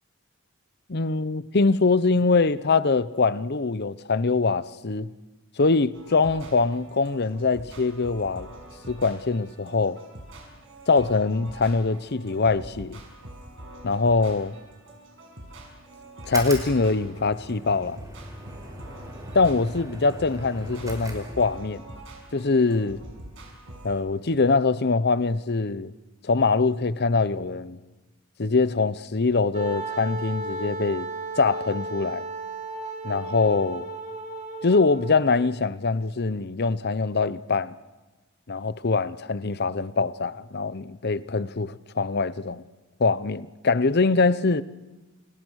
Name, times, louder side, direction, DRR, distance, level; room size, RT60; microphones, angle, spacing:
voice 1, 0.9-5.1 5.6-8.5 8.9-10.0 10.9-13.0 13.8-14.5 16.3-18.0 19.3-21.8 22.3-23.0 23.8-25.9 26.2-27.8 28.4-31.1 31.4-32.3 33.0-33.9 34.6-37.7 38.5-42.6 43.0-44.6, left 4 dB, 50° left, 0.8 m, -23 dB
sound 1, 5.9-24.0, right 1 dB, 65° right, 7.1 m, -45 dB
sound 2, 16.2-21.8, right 1 dB, 15° right, 5.4 m, -39 dB
Wind instrument woodwind instrument, 29.5-35.5, right 2 dB, 35° right, 2.8 m, -34 dB
28.5 x 28.5 x 6.5 m
head